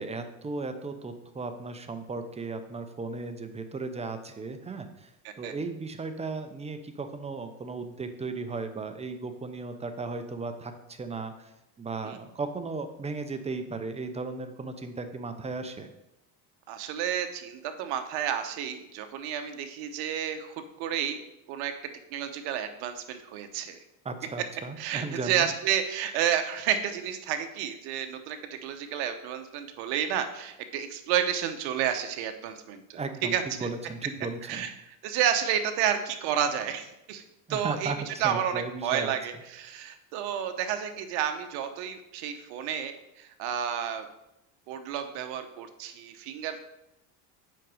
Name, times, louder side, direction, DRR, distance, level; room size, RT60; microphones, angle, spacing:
voice 1, 0.0-5.1 5.4-11.5 11.8-15.9 24.0-25.5 32.9-34.7 37.5-39.2, right 3 dB, 15° right, 8 dB, 0.7 m, -36 dB
voice 2, 16.7-21.2 21.5-21.7 22.1-23.8 24.8-33.7 34.5-34.7 35.0-37.2 37.5-37.9 38.2-44.1 44.7-46.6, right 9 dB, 70° right, 8 dB, 1.0 m, -31 dB
7.6 x 5.1 x 4.9 m, 0.90 s
supercardioid pair, 110°, 40 cm